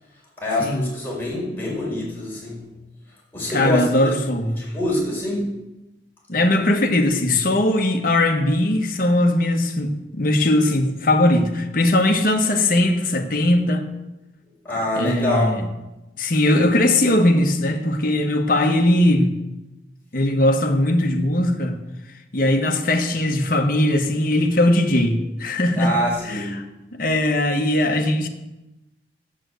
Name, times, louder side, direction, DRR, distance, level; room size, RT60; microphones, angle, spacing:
voice 1, 0.4-2.7 3.3-4.1 4.6-5.5 14.6-15.6 25.8-26.6, left 1 dB, 10° left, -5 dB, 5.0 m, -25 dB
voice 2, 3.5-4.6 6.3-13.9 15.0-15.7 16.2-19.3 20.1-21.8 22.3-25.9 26.3-26.6 27.0-28.3, left 1 dB, 55° left, 3 dB, 1.3 m, -19 dB
9.0 x 7.6 x 7.9 m, 0.98 s
head